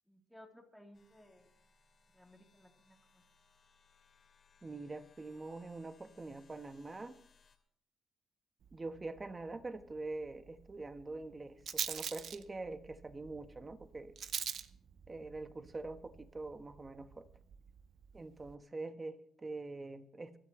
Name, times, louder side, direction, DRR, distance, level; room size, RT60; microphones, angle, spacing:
voice 1, 0.1-1.5 2.1-3.2, left 1 dB, ahead, 1 dB, 3.3 m, -59 dB
sound 1, 0.9-7.6, left 5 dB, 45° left, 2.7 m, -68 dB
voice 2, 4.6-7.2 8.7-14.1 15.1-17.3 18.1-20.4, right 3 dB, 25° right, 10 dB, 1.2 m, -44 dB
Rattle, 8.6-18.6, right 8 dB, 60° right, 0.7 m, -46 dB
24.5 x 12.5 x 3.2 m, 0.63 s
cardioid pair, 90°, 0 cm